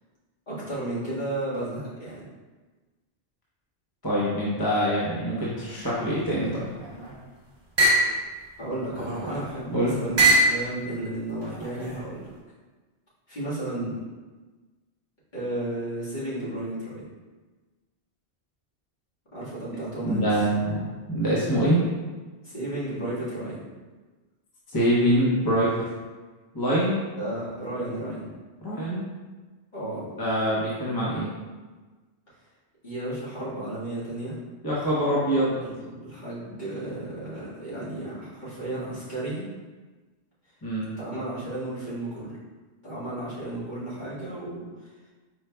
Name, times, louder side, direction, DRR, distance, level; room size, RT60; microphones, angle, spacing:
voice 1, 0.5-2.3 8.6-12.3 13.3-14.0 15.3-17.0 19.3-20.3 22.4-23.7 27.1-28.3 29.7-30.1 32.8-34.4 35.6-39.4 41.0-42.4 42.8-44.9, right 1 dB, 40° left, -10 dB, 1.8 m, -33 dB
voice 2, 4.0-6.7 9.7-10.0 20.0-20.8 21.1-21.8 24.7-25.9 26.5-27.0 28.6-29.0 30.2-31.3 34.6-35.6 40.6-40.9, equal, 20° left, -8 dB, 0.8 m, -24 dB
sound 1, 6.7-7.2 7.8-8.1 8.9-9.5 10.2-10.6 11.4-12.0, right 1 dB, 25° right, 0.7 m, -22 dB
4.7 x 4.7 x 2.2 m, 1.3 s
omnidirectional pair, 1.2 m